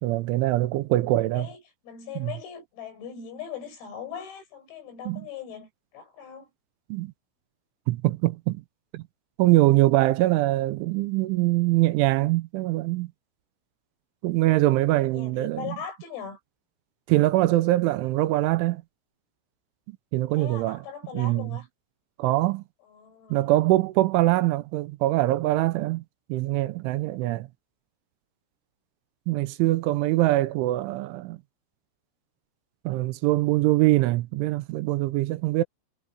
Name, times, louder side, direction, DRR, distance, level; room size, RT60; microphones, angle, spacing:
voice 1, 0.0-1.5 2.2-2.3 5.1-5.3 6.9-7.1 7.9-8.6 8.9-9.0 9.4-13.1 14.2-15.8 17.1-18.8 19.9-20.8 21.1-21.6 22.2-22.6 23.3-26.0 26.3-27.5 29.3-31.4 32.9-35.6, right 17 dB, 85° right, 3.0 m, -23 dB
voice 2, 1.4-6.5 15.1-16.4 20.3-21.7 22.9-23.5, left 7 dB, 90° left, 9.2 m, -40 dB
omnidirectional pair, 5.9 m